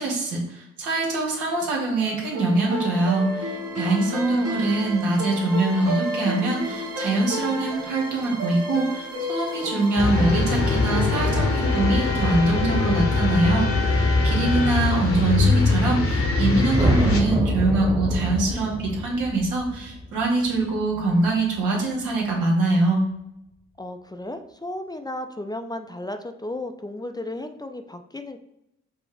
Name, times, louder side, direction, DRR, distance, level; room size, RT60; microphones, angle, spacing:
voice 1, 0.0-23.0, right 2 dB, 85° right, -1 dB, 1.4 m, -23 dB
sound 1, 2.0-13.2, right 1 dB, 55° right, 1.5 m, -32 dB
voice 2, 3.8-4.6 23.8-28.4, left 1 dB, 15° left, 6 dB, 0.5 m, -34 dB
sound 2, 10.0-17.2, left 3 dB, 50° left, 1.0 m, -22 dB
sound 3, 16.7-21.1, equal, 15° right, 1.2 m, -26 dB
5.3 x 2.1 x 4.9 m, 0.83 s
supercardioid pair, 50°, 30 cm